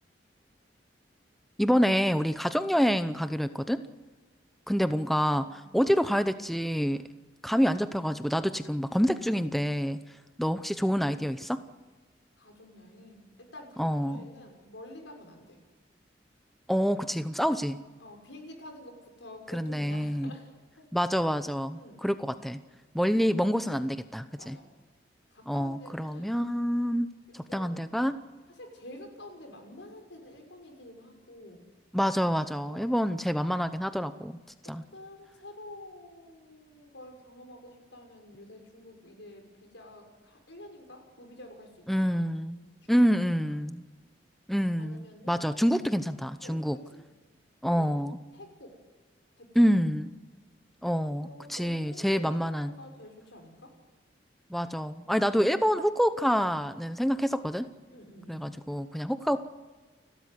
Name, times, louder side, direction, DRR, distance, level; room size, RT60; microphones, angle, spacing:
voice 1, 1.6-3.8 4.7-7.0 7.4-10.0 10.4-11.6 13.8-14.3 16.7-17.8 19.5-20.3 20.9-22.6 22.9-24.6 25.5-27.1 27.3-28.2 31.9-34.4 34.7-34.8 41.9-42.6 42.9-43.8 44.5-46.8 47.6-48.2 49.5-50.1 50.8-52.7 54.5-57.7 58.3-59.4, equal, ahead, 10 dB, 0.8 m, -27 dB
voice 2, 12.4-15.6 18.0-20.5 20.8-20.9 21.7-22.2 24.4-24.7 25.3-26.4 27.5-27.7 28.5-31.6 32.6-33.0 34.6-42.3 42.8-43.1 44.8-45.4 46.4-47.0 47.7-48.0 48.3-48.7 49.4-49.7 51.2-53.7 57.9-58.6, left 1 dB, 85° left, 3 dB, 6.4 m, -49 dB
30.0 x 13.0 x 9.6 m, 1.3 s
head